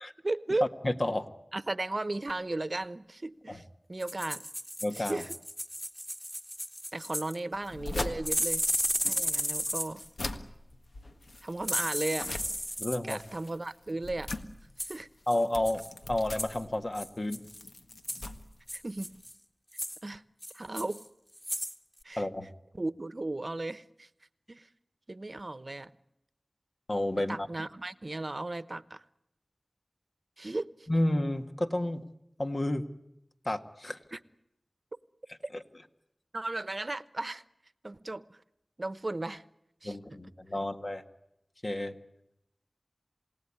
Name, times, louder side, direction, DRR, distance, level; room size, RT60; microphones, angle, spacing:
voice 1, 0.2-0.7 1.5-4.4 4.9-5.3 6.9-8.7 9.0-10.0 11.4-12.3 13.0-14.3 14.8-15.1 18.7-19.1 20.0-20.2 20.5-21.0 22.0-22.3 22.7-24.1 24.5-24.7 25.1-25.9 27.3-29.0 30.4-30.9 34.1-34.2 35.4-35.5 36.3-37.4 37.8-38.4 38.8-39.4 39.8-40.0, right 2 dB, 55° right, 16 dB, 0.9 m, -35 dB
voice 2, 0.8-1.3 3.5-3.6 4.8-5.2 12.8-13.2 15.3-15.8 16.1-17.4 22.2-22.5 26.9-27.4 30.9-32.0 32.4-32.8 33.5-34.0 39.8-41.0 41.6-41.9, left 1 dB, 50° left, 7 dB, 1.7 m, -30 dB
sound 1, 4.0-7.4 8.3-10.1 11.6-13.2 14.8-15.0 15.3-15.4 15.7-15.9 16.4-16.6 17.0-17.6 18.1-18.3 18.7-19.3 19.7-20.0 20.4-21.1 21.4-21.8 22.0-22.1, equal, 10° left, 2.0 m, -34 dB
sound 2, 7.5-19.3, left 2 dB, 85° left, 1.6 m, -42 dB
28.0 x 18.0 x 9.9 m, 0.85 s
wide cardioid pair, 45°, 0 cm